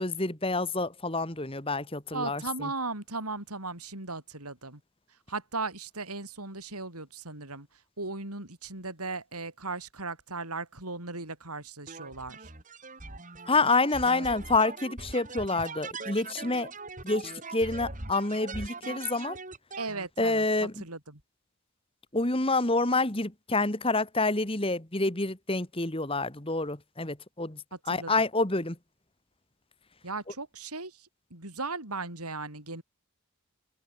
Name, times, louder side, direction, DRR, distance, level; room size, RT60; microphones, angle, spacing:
voice 1, 0.0-2.7 13.5-16.7 17.0-19.4 20.2-20.7 22.1-27.6 27.9-28.8, left 3 dB, 25° left, 2.1 m, -28 dB
voice 2, 2.1-4.8 5.3-7.7 8.0-12.5 19.8-21.2 27.9-28.1 30.0-32.8, right 3 dB, 85° right, 8.0 m, -37 dB
sound 1, 11.9-20.1, right 3 dB, 35° right, 5.8 m, -41 dB
head